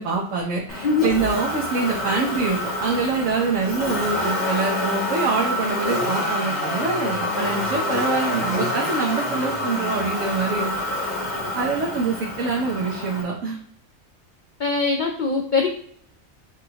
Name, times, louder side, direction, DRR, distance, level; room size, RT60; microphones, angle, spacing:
voice 1, 0.0-10.7 11.5-13.6, right 4 dB, 70° right, -3 dB, 1.1 m, -25 dB
Motor vehicle (road), 0.7-13.2, left 1 dB, 55° left, 1.7 m, -27 dB
voice 2, 14.6-15.7, left 4 dB, 70° left, 3 dB, 0.4 m, -21 dB
6.2 x 2.5 x 2.8 m, 0.66 s
omnidirectional pair, 1.4 m